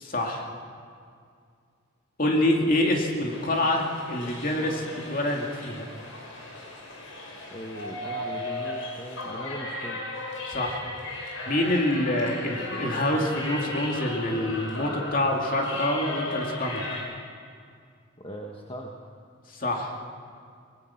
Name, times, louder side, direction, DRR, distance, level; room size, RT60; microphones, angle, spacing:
voice 1, 0.0-0.4 2.2-5.9 10.5-10.8 11.5-16.9 19.5-19.9, left 1 dB, 40° left, 1 dB, 2.6 m, -26 dB
sound 1, 3.3-17.0, left 2 dB, 80° left, 4.6 m, -36 dB
voice 2, 7.5-10.0 18.2-18.9, equal, 25° left, 0 dB, 1.3 m, -39 dB
23.0 x 20.5 x 5.9 m, 2.3 s
head